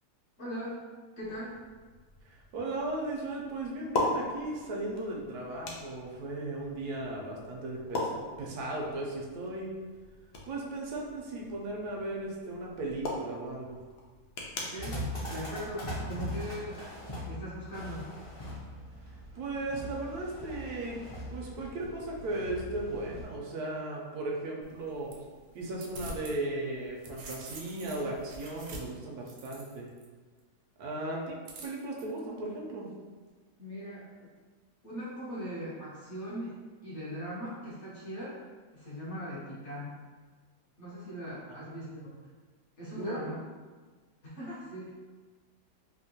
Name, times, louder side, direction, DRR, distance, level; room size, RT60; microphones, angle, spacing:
voice 1, 0.4-0.8 1.2-1.6 14.7-16.8 17.3-18.1 30.9-31.3 33.6-34.3 34.8-38.4 38.7-40.0 40.8-42.1 42.8-43.4 44.2-44.9, equal, 55° left, -8 dB, 1.0 m, -40 dB
sound 1, 1.2-16.4, left 2 dB, 90° left, 0.5 m, -40 dB
voice 2, 2.2-9.7 10.5-13.8 19.3-21.0 21.3-25.1 25.5-29.9 30.8-31.3 31.6-32.9 41.5-41.7 42.9-43.2, right 2 dB, 80° right, -2 dB, 1.1 m, -36 dB
sound 2, 14.8-23.3, equal, 35° left, 0.5 m, -40 dB
sound 3, 24.6-26.4 26.7-30.1 31.5-32.0, right 2 dB, 65° right, 0.8 m, -46 dB
3.5 x 2.2 x 2.7 m, 1.4 s
omnidirectional pair, 1.7 m